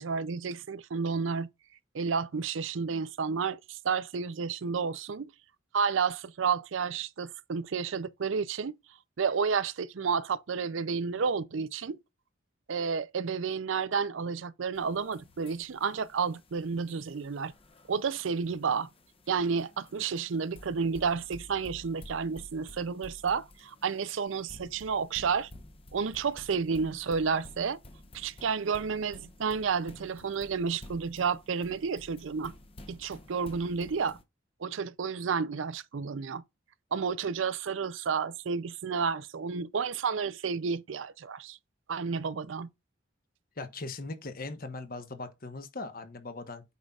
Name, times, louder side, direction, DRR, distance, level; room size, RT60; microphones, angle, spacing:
voice 1, 0.0-1.5 1.9-5.3 5.7-8.8 9.2-12.0 12.7-17.5 17.9-18.9 19.3-25.5 25.9-27.8 28.1-32.5 32.9-34.2 34.6-36.4 36.9-41.6 41.9-42.7, right 5 dB, 80° right, 0.5 m, -31 dB
sound 1, 14.7-34.2, left 1 dB, 30° left, 0.9 m, -52 dB
voice 2, 43.6-46.6, left 3 dB, 50° left, 1.2 m, -39 dB
8.3 x 5.5 x 2.4 m
head